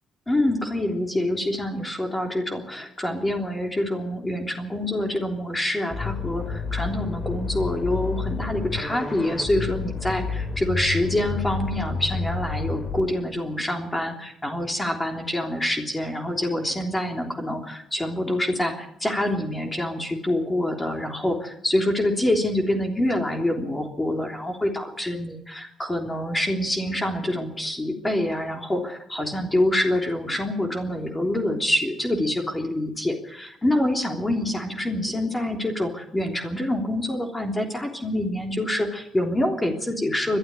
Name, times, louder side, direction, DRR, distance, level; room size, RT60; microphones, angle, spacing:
voice 1, 0.3-40.4, left 1 dB, 15° left, 3 dB, 3.4 m, -26 dB
sound 1, 5.9-13.0, left 4 dB, 30° left, 2.7 m, -30 dB
21.0 x 12.5 x 9.8 m, 0.76 s
cardioid pair, 90°, 0 cm